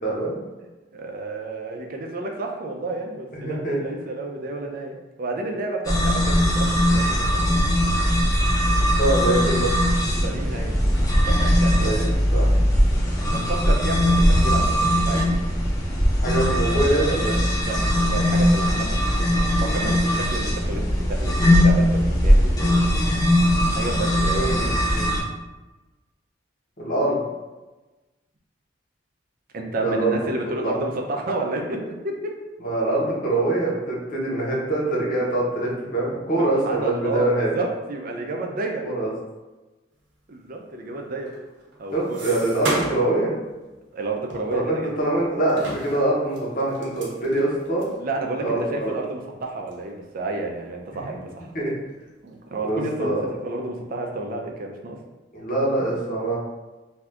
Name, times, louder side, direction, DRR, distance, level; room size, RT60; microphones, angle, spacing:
voice 1, 0.0-0.4 3.3-3.8 8.8-9.7 11.8-12.1 12.3-12.5 16.2-17.4 24.3-24.6 24.9-25.1 26.8-27.2 29.8-30.3 30.6-30.8 32.6-37.6 38.8-39.1 41.9-43.3 44.5-47.8 48.4-48.9 51.5-51.7 52.6-53.2 55.3-56.4, right 2 dB, 50° left, -5 dB, 0.9 m, -24 dB
voice 2, 0.9-7.5 10.2-10.7 11.3-12.1 13.3-15.2 17.6-22.9 23.8-24.8 29.5-32.4 36.4-38.8 40.3-41.3 41.8-42.3 42.6-42.7 43.9-44.9 48.0-51.5 52.2-53.2 53.4-55.0, right 2 dB, 50° right, 1 dB, 0.5 m, -31 dB
sound 1, 5.8-25.2, equal, 20° left, 0.6 m, -20 dB
sound 2, 41.2-43.2 43.5-43.7 44.3-45.1 45.5-48.0 48.5-48.6 48.9-49.0 49.7-49.9 50.3-51.0 51.4-52.1, right 1 dB, 90° right, 0.8 m, -34 dB
2.7 x 2.4 x 3.3 m, 1.1 s
head